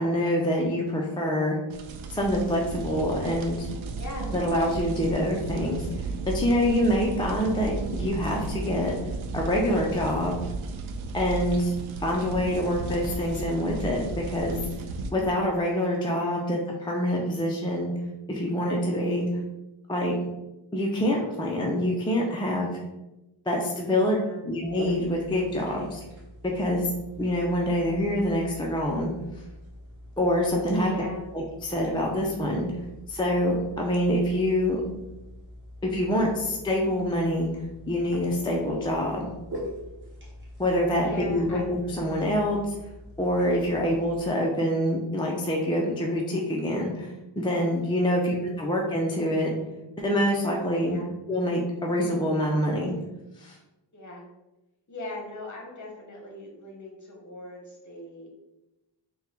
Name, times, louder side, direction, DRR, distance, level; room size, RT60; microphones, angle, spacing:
voice 1, 0.0-1.6 2.1-3.7 4.3-8.9 9.3-10.4 11.1-11.7 12.0-14.6 15.1-17.9 18.3-19.3 19.9-20.2 20.7-22.7 23.5-24.2 24.4-26.0 26.5-26.9 27.2-29.1 30.2-30.9 31.3-32.7 33.1-34.8 35.8-37.5 37.9-39.3 40.6-42.8 43.2-49.5 50.0-51.0 51.3-52.9 53.4-53.6, equal, 10° left, -2 dB, 0.4 m, -26 dB
sound 1, 1.7-15.1, right 3 dB, 85° right, 0.5 m, -34 dB
voice 2, 4.0-4.3 12.0-12.7 16.1-16.4 24.0-24.5 30.8-31.4 41.0-41.6 48.1-48.7 50.8-51.1 53.9-54.2 54.9-58.3, left 1 dB, 40° left, 0 dB, 1.0 m, -41 dB
sound 2, 24.6-44.3, equal, 25° right, 1.1 m, -44 dB
3.7 x 2.2 x 4.2 m, 0.98 s
wide cardioid pair, 130°, 47 cm